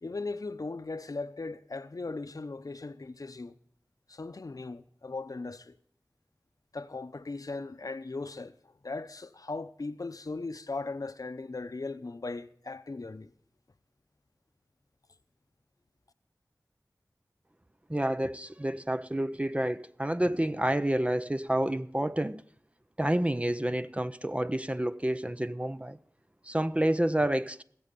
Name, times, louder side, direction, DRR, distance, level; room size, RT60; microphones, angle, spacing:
voice 1, 0.0-3.5 4.1-5.8 6.7-8.5 8.8-13.3, left 3 dB, 65° left, 0.7 m, -38 dB
voice 2, 17.9-22.4 23.0-26.0 26.4-27.6, right 1 dB, 20° right, 0.5 m, -29 dB
19.0 x 7.7 x 5.2 m
wide cardioid pair, 45°, 6 cm